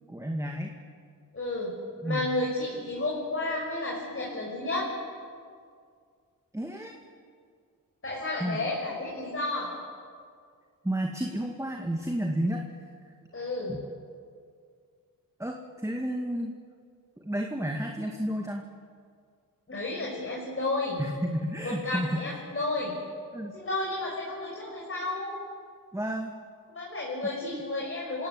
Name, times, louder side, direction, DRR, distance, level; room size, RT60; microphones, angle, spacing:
voice 1, 0.1-0.7 2.0-2.2 6.5-6.9 8.4-8.6 10.8-12.7 13.7-13.8 15.4-16.5 17.2-18.7 21.0-22.4 23.3-23.5 25.9-26.3 27.5-27.7, equal, 10° right, 2 dB, 2.2 m, -31 dB
voice 2, 1.3-1.7 2.0-4.9 8.0-9.7 13.3-13.8 19.7-21.0 21.6-22.9 23.5-25.4 26.7-28.3, left 2 dB, 40° left, -4 dB, 6.4 m, -32 dB
27.0 x 17.0 x 9.7 m, 2.2 s
cardioid pair, 75°, 34 cm